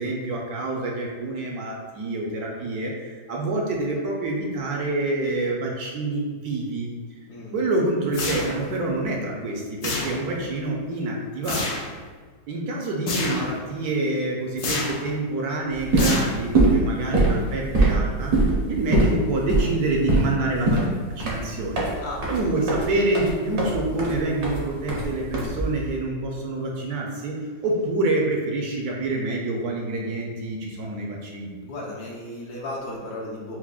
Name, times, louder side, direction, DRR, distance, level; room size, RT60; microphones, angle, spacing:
voice 1, 0.0-6.9 7.5-11.8 12.5-21.9 22.3-27.3 27.6-31.5, right 2 dB, 70° right, -1 dB, 1.0 m, -27 dB
sound 1, 8.1-8.8 9.8-10.5 11.4-11.9 13.1-13.6 14.6-15.1 16.0-16.7, left 3 dB, 85° left, 0.6 m, -29 dB
sound 2, 15.7-25.9, right 2 dB, 50° right, 0.6 m, -23 dB
voice 2, 31.6-33.6, left 1 dB, 70° left, -4 dB, 1.2 m, -35 dB
5.8 x 2.0 x 2.3 m, 1.5 s
omnidirectional pair, 1.8 m